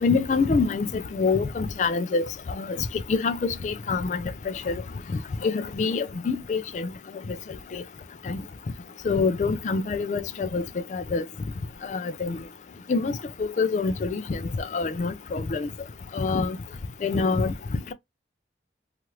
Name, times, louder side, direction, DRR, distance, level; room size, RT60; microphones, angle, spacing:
voice 1, 0.0-4.8 5.1-6.9 7.3-7.4 7.7-7.8 8.2-8.4 9.0-10.6 10.9-11.2 11.8-12.4 12.9-15.7 16.1-16.6 17.0-17.9, left 4 dB, 40° left, 0.3 m, -26 dB
2.8 x 2.4 x 3.0 m
head